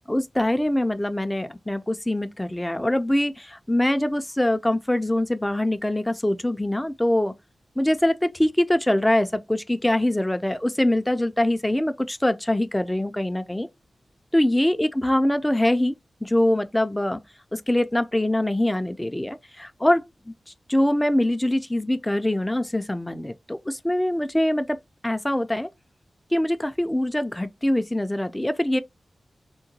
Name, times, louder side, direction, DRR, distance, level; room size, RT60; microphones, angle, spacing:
voice 1, 0.1-7.3 7.8-13.7 14.3-15.9 16.2-17.2 17.5-20.3 20.7-24.8 25.0-25.7 26.3-28.8, left 1 dB, 10° left, 0.4 m, -23 dB
3.7 x 2.1 x 2.7 m
wide cardioid pair, 105°, 0 cm